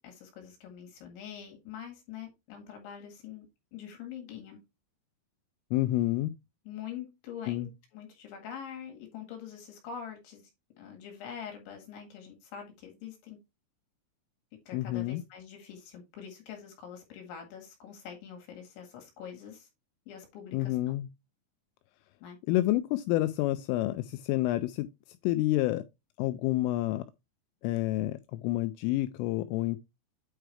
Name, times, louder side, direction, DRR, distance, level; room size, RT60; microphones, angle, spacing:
voice 1, 0.0-3.5 3.7-4.6 6.7-10.5 10.8-13.4 14.7-19.7 20.1-21.0 22.2-22.4, left 8 dB, 70° left, 4.0 m, -44 dB
voice 2, 5.7-6.3 7.5-7.7 14.7-15.2 20.5-21.1 22.5-24.9 25.2-25.8 26.2-27.0 27.6-29.8, left 16 dB, 85° left, 2.9 m, -29 dB
9.1 x 4.6 x 3.3 m
omnidirectional pair, 5.9 m